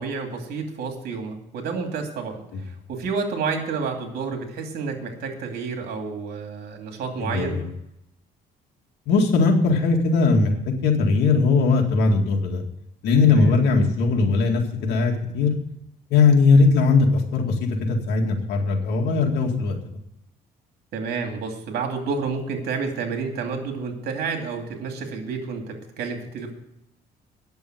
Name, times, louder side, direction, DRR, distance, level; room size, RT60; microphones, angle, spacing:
voice 1, 0.0-2.4 2.9-7.6 13.3-13.6 20.9-26.5, right 5 dB, 70° right, 4 dB, 2.6 m, -30 dB
voice 2, 7.2-7.7 9.1-12.6 13.0-15.5 16.1-19.8, left 4 dB, 75° left, 1 dB, 2.1 m, -19 dB
9.5 x 7.0 x 9.0 m, 0.82 s
cardioid pair, 110°, 17 cm